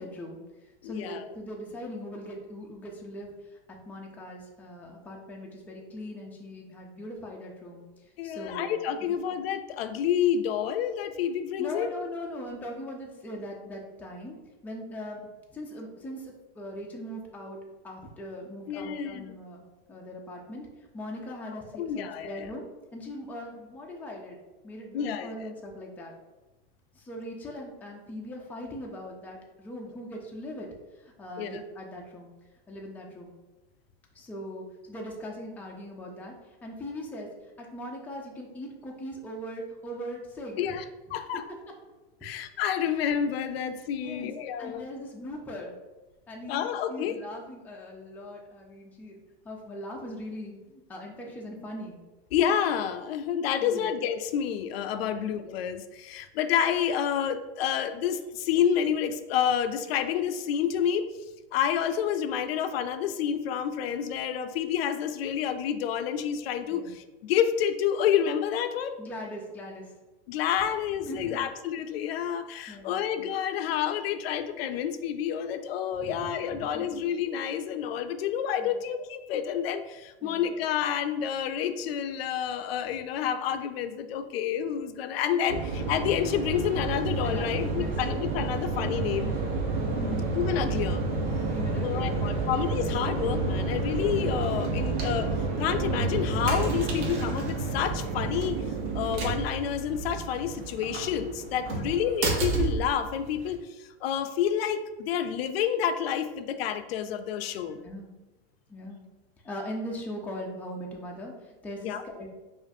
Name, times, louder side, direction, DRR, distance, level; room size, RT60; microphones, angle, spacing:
voice 1, 0.0-3.6 3.9-8.7 9.1-9.2 11.6-14.4 14.6-15.2 15.5-17.6 17.8-24.4 24.6-26.1 26.9-30.7 30.9-32.3 32.7-33.3 34.1-40.8 44.0-44.3 44.6-45.8 46.3-52.0 53.6-53.9 55.1-55.3 66.7-66.9 69.0-69.9 71.1-71.4 72.7-73.0 75.9-76.9 78.6-78.8 80.2-80.5 87.2-88.1 89.3-89.4 89.9-90.3 91.5-92.5 101.7-101.9 107.8-108.1 108.7-109.0 109.4-112.4, left 1 dB, 5° left, -1 dB, 0.4 m, -40 dB
voice 2, 0.8-1.3 8.2-11.9 18.7-19.4 21.8-22.5 24.9-25.3 31.4-31.5 40.6-40.8 41.1-41.4 42.2-44.9 46.5-47.1 52.3-61.1 61.5-68.9 70.3-89.3 90.3-91.0 91.8-95.3 95.6-98.6 98.9-107.8 111.8-112.0, left 9 dB, 85° left, 9 dB, 0.5 m, -29 dB
sound 1, 85.5-103.5, right 3 dB, 80° right, 1.0 m, -30 dB
5.0 x 2.5 x 2.6 m, 1.1 s
supercardioid pair, 140°, 29 cm